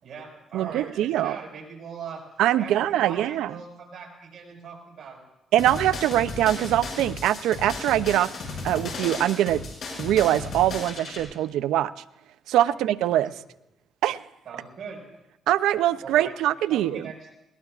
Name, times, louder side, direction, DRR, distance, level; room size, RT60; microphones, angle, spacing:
voice 1, 0.0-2.2 2.6-5.2 12.7-12.8 13.2-13.3 14.4-15.0 16.0-16.3 16.7-17.3, right 6 dB, 65° right, 1 dB, 4.9 m, -40 dB
voice 2, 0.5-1.4 2.4-3.5 5.5-8.3 8.6-9.6 10.0-11.9 12.5-13.3 14.0-14.2 15.5-17.1, right 12 dB, 85° right, 15 dB, 0.4 m, -23 dB
sound 1, 5.6-11.2, left 3 dB, 55° left, 5.9 m, -35 dB
21.0 x 19.0 x 2.4 m, 0.92 s
cardioid pair, 90°, 0 cm